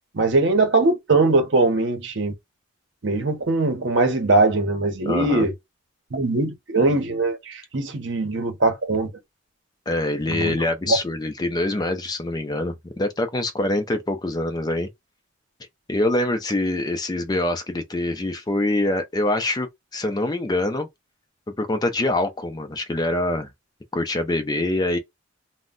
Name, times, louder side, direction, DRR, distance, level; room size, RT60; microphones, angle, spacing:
voice 1, 0.1-2.3 3.0-5.5 6.1-9.1 10.3-10.6 10.9-11.0, right 3 dB, 60° right, 0.8 m, -21 dB
voice 2, 5.1-5.5 9.9-14.9 15.9-20.9 21.6-23.5 23.9-25.0, left 1 dB, 20° left, 0.4 m, -24 dB
2.2 x 2.1 x 3.6 m
head